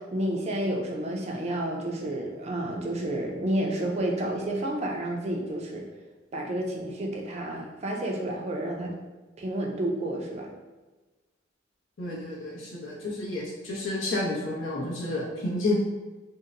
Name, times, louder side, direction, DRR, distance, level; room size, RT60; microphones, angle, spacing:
voice 1, 0.0-5.8 6.3-8.9 9.4-10.5, right 1 dB, 35° right, 0 dB, 0.5 m, -30 dB
voice 2, 12.0-15.7, left 2 dB, 80° left, -5 dB, 0.8 m, -30 dB
2.7 x 2.1 x 3.7 m, 1.2 s
head